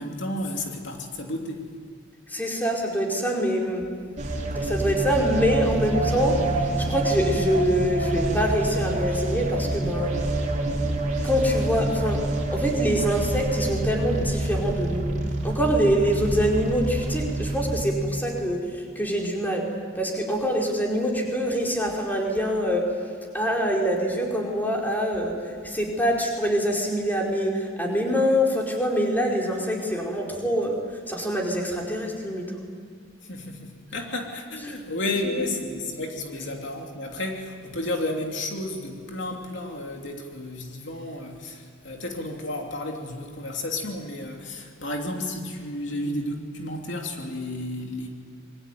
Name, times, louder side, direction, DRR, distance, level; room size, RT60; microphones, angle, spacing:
voice 1, 0.0-1.7 33.2-48.1, left 1 dB, 65° left, 1 dB, 3.1 m, -32 dB
voice 2, 2.3-3.8 4.5-10.1 11.2-12.2 12.5-15.1 15.4-19.7 20.0-22.8 23.3-25.3 25.6-30.8 31.1-32.5 34.6-34.7, equal, 10° left, -1 dB, 4.8 m, -25 dB
sound 1, 4.2-17.8, right 2 dB, 40° right, 4.3 m, -27 dB
27.0 x 23.0 x 9.4 m, 2.2 s
head